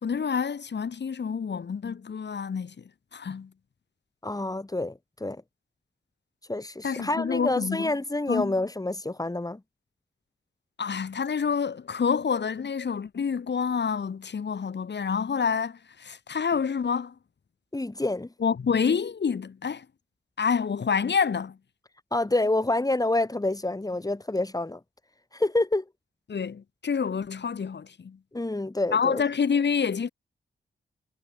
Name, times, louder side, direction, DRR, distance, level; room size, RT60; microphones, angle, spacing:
voice 1, 0.0-2.8 3.1-3.5 6.8-7.9 8.3-8.5 10.8-17.1 18.4-19.9 20.4-21.6 26.3-28.2 28.9-30.1, left 6 dB, 60° left, 2.4 m, -28 dB
voice 2, 4.2-5.4 6.5-9.6 17.7-18.3 22.1-24.8 25.3-25.8 28.3-29.2, left 2 dB, 20° left, 6.3 m, -27 dB
wide cardioid pair, 115°, 20 cm